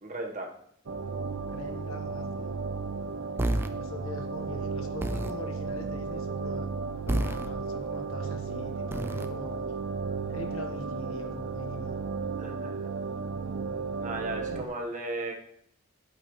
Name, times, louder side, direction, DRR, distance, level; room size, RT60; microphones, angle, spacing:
voice 1, 0.0-0.5 12.4-12.9 14.0-15.3, right 2 dB, 35° right, 2 dB, 1.3 m, -36 dB
sound 1, 0.9-14.7, right 4 dB, 65° right, 0.5 m, -34 dB
voice 2, 1.4-2.5 3.7-6.7 7.1-9.6 10.3-12.0 14.2-14.7, left 2 dB, 80° left, 4 dB, 1.3 m, -42 dB
sound 2, 3.4-3.7 5.0-5.4 7.1-7.5 8.9-9.3, right 1 dB, 10° right, 0.4 m, -29 dB
8.5 x 8.5 x 3.2 m, 0.68 s
head